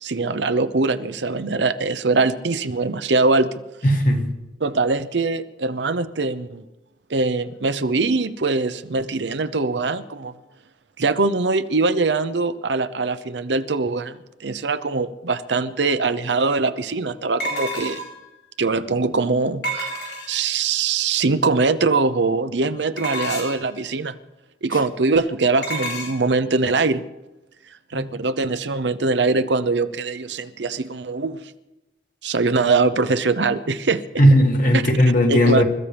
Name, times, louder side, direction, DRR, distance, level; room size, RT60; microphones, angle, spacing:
voice 1, 0.0-3.5 4.6-6.6 7.1-10.3 11.0-18.0 18.6-19.9 20.3-24.1 24.6-27.0 27.9-31.4 32.2-34.0 34.7-34.8 35.3-35.6, right 3 dB, 80° right, 11 dB, 0.8 m, -22 dB
voice 2, 3.8-4.3 27.9-28.1 34.2-35.6, equal, 50° left, 2 dB, 2.4 m, -16 dB
sound 1, 15.8-15.9 17.4-18.2 19.6-20.5 23.0-23.7 25.6-26.1, right 1 dB, 70° left, 4.3 m, -29 dB
28.5 x 14.5 x 3.4 m, 1.0 s
head